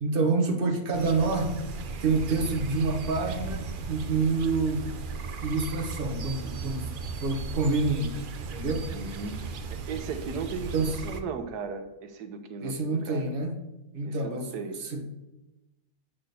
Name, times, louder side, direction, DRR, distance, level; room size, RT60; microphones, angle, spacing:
voice 1, 0.0-1.6 2.0-4.9 5.4-6.9 7.2-8.9 10.7-11.0 12.6-13.5 13.9-15.0, right 3 dB, 40° right, 4 dB, 1.2 m, -28 dB
sound 1, 0.9-11.2, right 4 dB, 65° right, 0.5 m, -36 dB
voice 2, 8.9-10.8 11.0-13.3 14.0-14.8, right 5 dB, 85° right, 8 dB, 1.4 m, -37 dB
8.1 x 4.4 x 6.7 m, 1.0 s
omnidirectional pair, 1.6 m